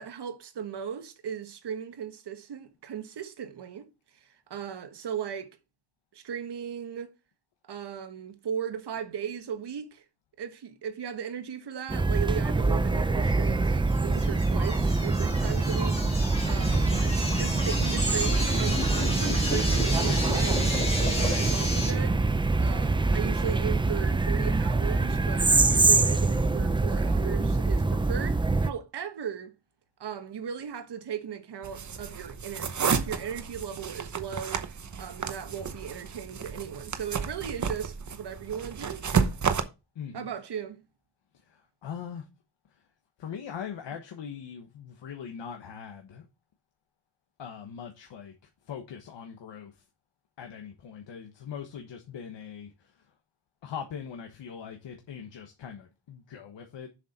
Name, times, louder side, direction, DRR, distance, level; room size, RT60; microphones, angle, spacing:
voice 1, 0.0-3.9 4.1-5.5 6.1-7.1 7.6-10.0 10.4-20.7 21.1-22.2 22.6-29.5 30.0-34.6 35.0-39.0 40.1-40.8, right 8 dB, 65° right, 1.3 m, -37 dB
sound 1, 11.9-28.7, right 3 dB, 10° right, 0.4 m, -25 dB
sound 2, 13.9-21.9, left 1 dB, 15° left, 2.4 m, -33 dB
sound 3, 31.6-39.6, right 6 dB, 40° right, 0.9 m, -31 dB
voice 2, 39.9-40.3 41.3-42.3 42.7-42.8 43.2-46.2 47.4-48.3 48.6-49.8 50.4-53.1 53.6-56.9, left 7 dB, 90° left, 1.3 m, -41 dB
7.4 x 6.2 x 4.2 m
wide cardioid pair, 165°, 43 cm